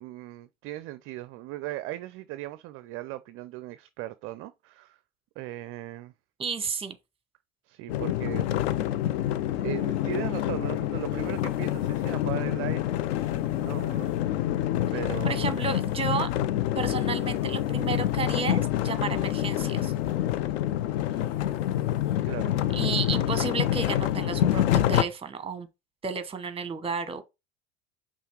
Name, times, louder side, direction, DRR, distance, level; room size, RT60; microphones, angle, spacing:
voice 1, 0.0-5.0 5.4-6.1 7.7-8.5 9.6-12.9 13.3-14.4 14.9-15.6 22.2-22.6, right 15 dB, 35° right, 0.4 m, -38 dB
voice 2, 6.4-7.0 15.2-16.3 16.7-19.9 22.7-25.7 26.0-27.2, right 5 dB, 15° right, 1.1 m, -32 dB
sound 1, 7.9-25.0, left 12 dB, 60° left, 0.6 m, -27 dB
sound 2, 10.1-25.1, left 1 dB, 75° left, 2.6 m, -53 dB
5.6 x 4.0 x 4.5 m
figure-of-eight pair, 80°, 37 cm